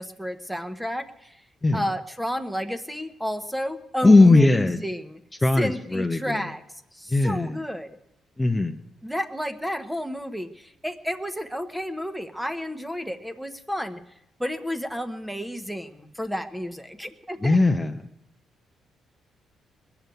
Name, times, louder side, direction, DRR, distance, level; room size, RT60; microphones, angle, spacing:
voice 1, 0.0-1.4 1.7-5.2 5.6-6.6 6.9-8.0 9.0-14.0 14.4-17.6, equal, ahead, 9 dB, 1.2 m, -31 dB
voice 2, 4.0-4.8 5.4-6.4 7.1-7.6 8.4-8.8 17.4-17.9, left 2 dB, 15° left, 4 dB, 0.8 m, -18 dB
21.0 x 7.0 x 9.2 m, 0.82 s
cardioid pair, 90°, 0 cm